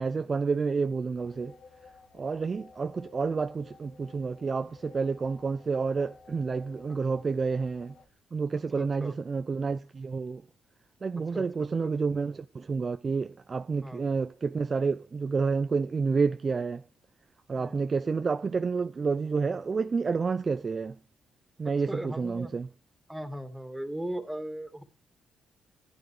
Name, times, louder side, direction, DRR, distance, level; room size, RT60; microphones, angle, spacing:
voice 1, 0.0-1.5 2.1-7.9 8.3-10.4 11.0-16.8 17.5-21.0 21.6-22.7, right 4 dB, 35° right, 0.6 m, -29 dB
sound 1, 1.2-8.1, left 4 dB, 70° left, 2.3 m, -54 dB
voice 2, 8.8-9.1 11.3-11.4 11.8-11.9 13.8-14.0 17.6-17.8 21.9-22.5 23.1-24.8, right 1 dB, 5° right, 2.6 m, -37 dB
15.0 x 9.3 x 5.0 m
cardioid pair, 90°, 0 cm